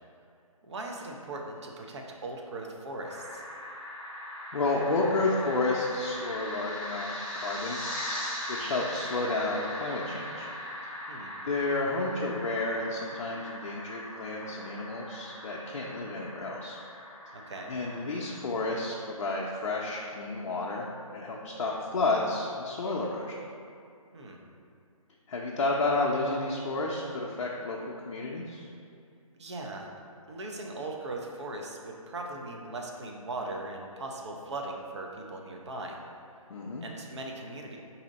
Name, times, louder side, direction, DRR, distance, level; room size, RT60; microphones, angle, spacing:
voice 1, 0.6-3.4 11.1-11.3 17.3-17.7 24.1-24.4 29.4-29.9 30.3-36.0 36.8-37.8, right 2 dB, 50° right, 1 dB, 0.6 m, -39 dB
sound 1, 3.0-18.4, left 1 dB, ahead, 0.7 m, -40 dB
voice 2, 4.5-7.8 8.5-10.5 11.4-16.8 17.7-23.4 25.3-28.6 36.5-36.9, left 2 dB, 60° left, -3 dB, 0.5 m, -31 dB
4.2 x 2.7 x 3.9 m, 2.4 s
figure-of-eight pair, 155°, 18 cm